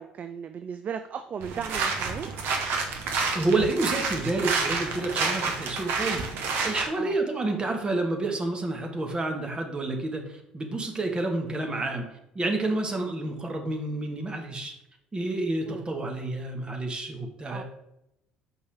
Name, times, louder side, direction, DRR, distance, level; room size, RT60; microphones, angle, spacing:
voice 1, 0.0-2.3 6.9-7.2 15.7-15.9 17.5-17.6, right 7 dB, 40° right, 9 dB, 0.4 m, -36 dB
sound 1, 1.4-6.9, right 4 dB, 60° right, 1.1 m, -29 dB
voice 2, 3.3-14.7 15.1-17.6, right 2 dB, 25° right, 3 dB, 1.3 m, -29 dB
6.4 x 5.3 x 3.4 m, 0.84 s
figure-of-eight pair, 55°, 4 cm